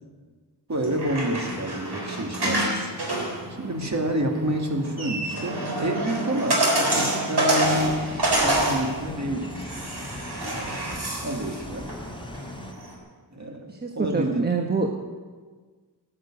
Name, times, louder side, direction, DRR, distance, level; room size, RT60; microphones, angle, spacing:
voice 1, 0.7-2.9 3.6-8.0 8.4-9.5 10.4-10.9 11.2-11.9 13.3-14.5, right 1 dB, 40° right, 3 dB, 2.3 m, -28 dB
sound 1, 0.7-12.9, right 1 dB, 65° right, 3.6 m, -28 dB
sound 2, 7.6-12.7, left 2 dB, 10° left, 0.8 m, -40 dB
voice 2, 13.7-14.9, right 4 dB, 25° right, 2 dB, 1.2 m, -26 dB
14.0 x 9.9 x 8.7 m, 1.5 s
wide cardioid pair, 85°, 42 cm